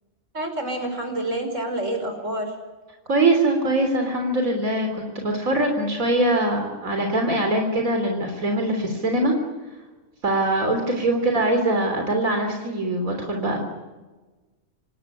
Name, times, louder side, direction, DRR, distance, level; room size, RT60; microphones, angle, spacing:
voice 1, 0.3-2.6 11.0-11.4, right 1 dB, 65° right, 5 dB, 5.6 m, -28 dB
voice 2, 3.1-9.4 10.2-13.6, right 1 dB, 90° right, 3 dB, 3.9 m, -22 dB
28.5 x 18.5 x 9.9 m, 1.2 s
omnidirectional pair, 1.4 m